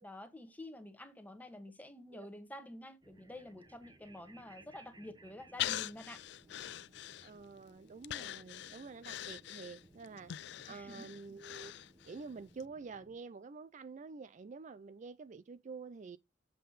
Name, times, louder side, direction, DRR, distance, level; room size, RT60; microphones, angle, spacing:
voice 1, 0.0-6.2 10.7-11.1, left 1 dB, 10° left, 1.3 m, -49 dB
sound 1, 3.0-13.2, right 2 dB, 20° right, 0.9 m, -62 dB
Breathing, 5.6-7.6 8.0-12.2 12.6-12.7, left 13 dB, 60° left, 0.4 m, -42 dB
voice 2, 7.2-11.7 12.1-16.2, right 4 dB, 40° right, 0.4 m, -48 dB
7.6 x 5.5 x 4.0 m
head